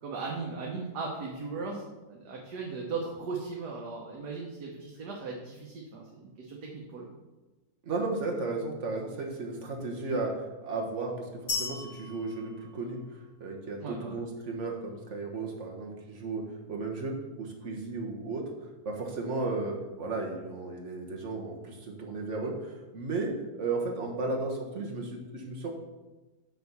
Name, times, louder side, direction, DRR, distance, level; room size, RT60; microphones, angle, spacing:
voice 1, 0.0-7.1 13.8-14.2, right 4 dB, 80° right, -2 dB, 1.6 m, -37 dB
voice 2, 7.8-13.0 13.4-18.4 18.8-25.7, right 3 dB, 50° right, 1 dB, 1.6 m, -34 dB
sound 1, 11.5-13.4, left 4 dB, 65° left, 3.3 m, -37 dB
6.8 x 4.6 x 6.8 m, 1.1 s
omnidirectional pair, 1.7 m